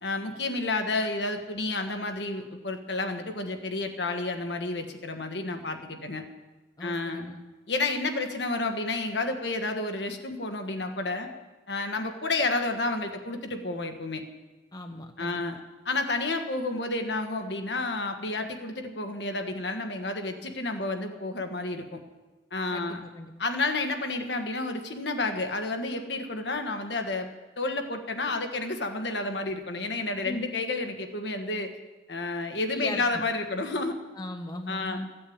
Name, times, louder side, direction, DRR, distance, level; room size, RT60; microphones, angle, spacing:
voice 1, 0.0-6.2 6.8-7.2 7.7-11.3 11.7-14.2 15.2-15.6 15.8-22.0 22.5-23.0 23.4-27.3 27.6-31.7 32.1-34.0 34.7-35.0, left 2 dB, 65° left, 5 dB, 1.5 m, -30 dB
voice 2, 6.8-7.4 14.7-15.4 22.7-23.3 30.2-30.6 32.7-33.2 34.2-35.1, left 1 dB, 20° left, 5 dB, 0.8 m, -38 dB
14.5 x 8.5 x 8.7 m, 1.2 s
head